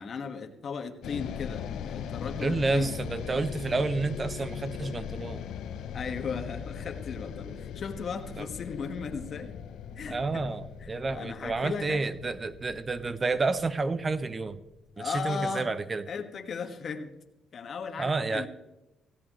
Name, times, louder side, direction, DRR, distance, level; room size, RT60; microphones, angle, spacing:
voice 1, 0.0-3.0 5.9-9.6 10.0-10.5 10.8-12.0 15.0-15.7 16.1-17.1 17.5-18.5, left 5 dB, 50° left, 6 dB, 1.6 m, -36 dB
sound 1, 1.0-15.3, left 8 dB, 75° left, 0.7 m, -40 dB
voice 2, 2.4-5.4 8.4-8.5 10.1-14.6 15.0-16.0 18.0-18.5, right 3 dB, 30° right, 14 dB, 0.7 m, -30 dB
17.0 x 16.0 x 3.1 m, 0.98 s
cardioid pair, 90°, 0 cm